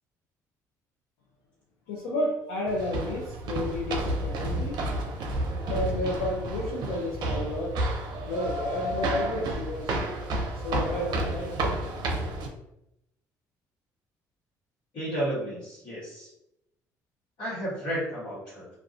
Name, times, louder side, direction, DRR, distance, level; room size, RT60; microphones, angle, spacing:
voice 1, 1.9-4.8 5.7-7.8 8.2-10.0 10.6-11.5, left 1 dB, 90° left, -3 dB, 0.5 m, -31 dB
sound 1, 2.7-12.5, right 1 dB, 60° right, 0.5 m, -31 dB
voice 2, 14.9-16.3 17.4-18.7, right 1 dB, 70° left, -10 dB, 1.1 m, -32 dB
2.4 x 2.3 x 2.4 m, 0.83 s
supercardioid pair, 70°, 8 cm